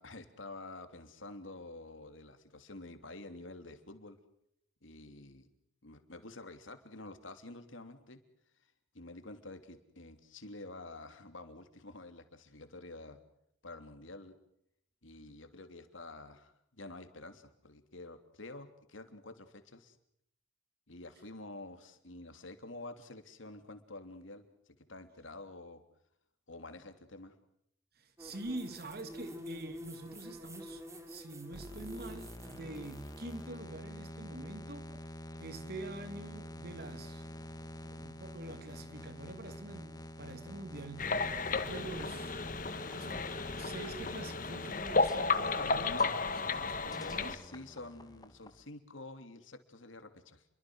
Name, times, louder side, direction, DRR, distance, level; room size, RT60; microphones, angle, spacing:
voice 1, 0.0-4.2 4.8-5.5 5.8-8.2 8.9-13.2 13.6-14.4 15.0-20.0 20.9-25.8 26.5-27.3 46.9-50.4, left 2 dB, 80° left, 3.2 m, -49 dB
voice 2, 28.0-30.8 31.1-34.9 35.4-37.2 37.6-41.2 41.6-47.3, right 2 dB, 50° right, 2.8 m, -46 dB
sound 1, 28.2-33.3, equal, 15° right, 2.9 m, -48 dB
sound 2, 31.5-48.6, left 1 dB, 20° left, 2.1 m, -47 dB
sound 3, 41.0-47.4, left 4 dB, 45° left, 1.5 m, -33 dB
30.0 x 23.5 x 6.4 m
head